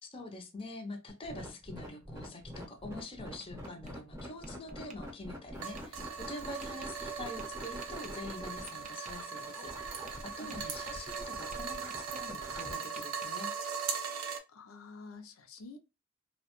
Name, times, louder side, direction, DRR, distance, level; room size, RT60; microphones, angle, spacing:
voice 1, 0.0-13.5, left 2 dB, 25° left, 0.5 m, -45 dB
sound 1, 1.1-12.7, equal, 15° right, 0.7 m, -45 dB
Tap, 2.9-4.0 4.4-5.0 5.8-5.9 6.6-6.9 7.4-8.1 8.7-9.2 9.9-10.2 10.5-12.3 12.6-13.3, right 5 dB, 35° right, 0.4 m, -52 dB
sound 2, 5.6-14.4, right 6 dB, 85° right, 0.6 m, -40 dB
voice 2, 14.5-15.8, left 3 dB, 85° left, 0.5 m, -48 dB
2.7 x 2.1 x 2.9 m
head